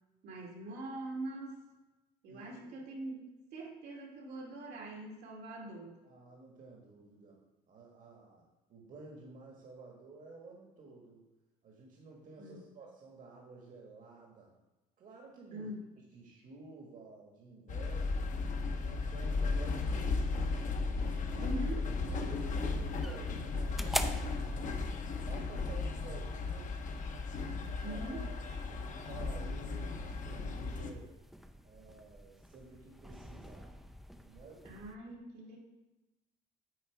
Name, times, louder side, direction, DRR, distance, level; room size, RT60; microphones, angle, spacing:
voice 1, 0.2-1.6 2.2-6.0 12.4-12.6 15.5-15.9 21.4-21.8 27.8-28.2 34.6-35.6, right 2 dB, 75° right, -2 dB, 2.3 m, -43 dB
voice 2, 2.3-2.8 6.0-7.4 7.7-11.2 11.6-14.5 15.0-15.7 16.1-18.3 18.8-20.7 21.2-21.5 22.1-24.8 25.2-26.8 27.3-31.1 31.6-33.7 34.2-34.7, right 3 dB, 50° right, -2 dB, 1.7 m, -52 dB
sound 1, 17.7-30.9, left 3 dB, 50° left, 1.0 m, -35 dB
sound 2, 22.5-34.9, equal, ahead, 0.5 m, -46 dB
8.6 x 4.7 x 4.7 m, 1.1 s
cardioid pair, 110°, 17 cm